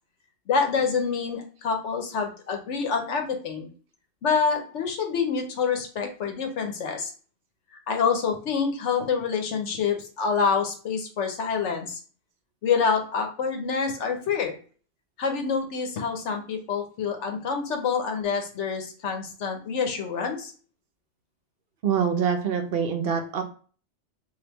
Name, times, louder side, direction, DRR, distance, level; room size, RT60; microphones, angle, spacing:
voice 1, 0.5-3.7 4.2-7.1 7.9-12.0 12.6-14.6 15.2-20.5, left 5 dB, 85° left, 4 dB, 1.1 m, -27 dB
voice 2, 21.8-23.4, right 7 dB, 65° right, 6 dB, 0.7 m, -25 dB
3.4 x 2.6 x 2.9 m, 0.40 s
omnidirectional pair, 1.2 m